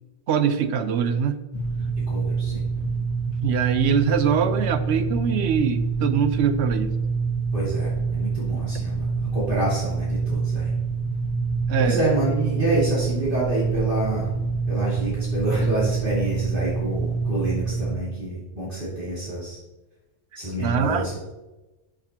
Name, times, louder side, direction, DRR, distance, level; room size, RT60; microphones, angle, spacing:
voice 1, 0.3-1.4 3.4-6.9 11.7-12.0 20.6-21.1, right 7 dB, 80° right, 11 dB, 0.9 m, -23 dB
sound 1, 1.5-18.0, right 4 dB, 85° left, 1.3 m, -26 dB
voice 2, 1.8-2.7 7.5-10.7 11.8-14.3 14.7-19.6 20.3-21.2, right 2 dB, 55° right, -8 dB, 2.6 m, -27 dB
12.5 x 6.4 x 2.9 m, 1.1 s
omnidirectional pair, 1.1 m